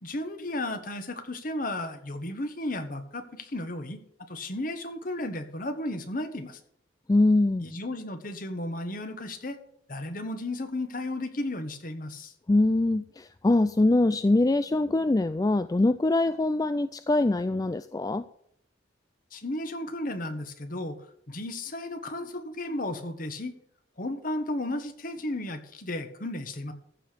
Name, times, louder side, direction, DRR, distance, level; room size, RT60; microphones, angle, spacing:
voice 1, 0.0-4.0 4.3-6.6 7.6-9.6 9.9-12.3 19.3-23.6 24.0-26.7, left 1 dB, 50° left, 7 dB, 1.5 m, -34 dB
voice 2, 7.1-7.7 12.5-18.3, left 2 dB, 20° left, 11 dB, 0.4 m, -23 dB
14.5 x 4.9 x 8.6 m, 0.69 s
head